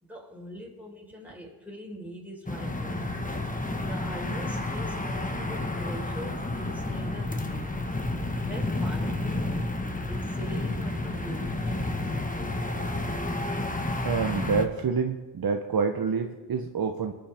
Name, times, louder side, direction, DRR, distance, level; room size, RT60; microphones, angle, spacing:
voice 1, 0.0-3.1 3.8-7.7 8.4-9.7 10.1-13.0, equal, 5° right, -2 dB, 4.2 m, -43 dB
sound 1, 2.5-14.7, left 2 dB, 20° left, 1.3 m, -30 dB
voice 2, 14.0-17.1, right 5 dB, 55° right, 5 dB, 0.8 m, -27 dB
21.5 x 7.8 x 3.5 m, 1.2 s
cardioid pair, 45°, 45 cm